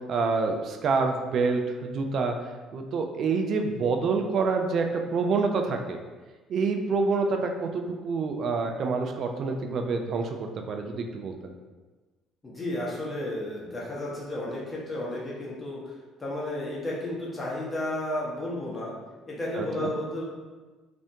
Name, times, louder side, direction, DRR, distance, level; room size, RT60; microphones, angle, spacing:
voice 1, 0.1-2.3 2.7-4.9 5.1-6.0 6.5-11.5 19.6-19.9, right 4 dB, 55° right, 4 dB, 0.3 m, -27 dB
voice 2, 12.4-15.8 16.2-18.9 19.3-20.2, left 1 dB, 30° left, -5 dB, 0.9 m, -32 dB
2.5 x 2.1 x 2.7 m, 1.3 s
hypercardioid pair, 55°, 0 cm